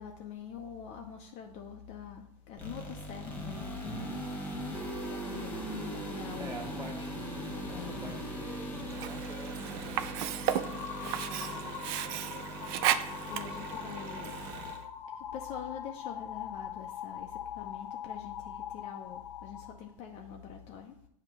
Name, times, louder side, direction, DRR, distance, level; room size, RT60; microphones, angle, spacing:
voice 1, 0.0-4.0 4.5-6.7 7.5-8.1 13.2-14.4 15.1-21.0, left 8 dB, 30° left, 0.6 m, -45 dB
sound 1, 2.6-14.8, equal, 10° left, 1.4 m, -40 dB
voice 2, 6.4-7.2 7.7-10.0 10.6-11.6, right 2 dB, 15° right, 1.7 m, -47 dB
Sink (filling or washing), 8.9-14.9, right 11 dB, 40° right, 0.4 m, -35 dB
sound 2, 10.4-19.7, left 9 dB, 65° left, 0.9 m, -42 dB
7.8 x 2.9 x 6.0 m
hypercardioid pair, 125°, 21 cm